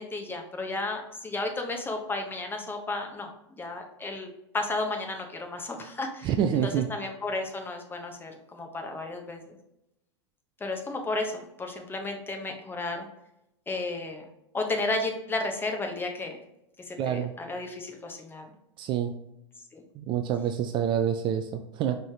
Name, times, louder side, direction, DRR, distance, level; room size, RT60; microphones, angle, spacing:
voice 1, 0.0-3.3 3.6-6.3 6.6-9.6 10.6-13.1 13.7-14.3 14.5-16.4 16.9-18.5 19.7-19.8, left 2 dB, 15° left, 3 dB, 0.9 m, -33 dB
voice 2, 6.2-6.9 17.0-17.3 18.8-19.1 20.0-22.0, right 9 dB, 35° right, 7 dB, 0.4 m, -27 dB
5.3 x 3.4 x 2.8 m, 0.85 s
hypercardioid pair, 100°, 15 cm